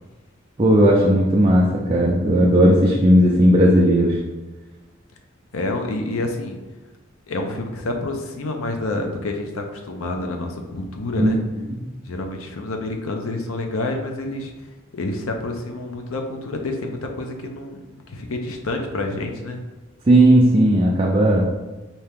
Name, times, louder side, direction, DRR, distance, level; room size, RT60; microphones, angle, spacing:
voice 1, 0.6-4.2 11.2-11.3 20.1-21.4, right 1 dB, 25° right, -3 dB, 0.4 m, -15 dB
voice 2, 5.5-6.6 7.3-11.4 12.0-14.5 14.9-19.6, left 2 dB, 85° left, 3 dB, 0.6 m, -28 dB
4.4 x 2.8 x 3.5 m, 1.1 s
head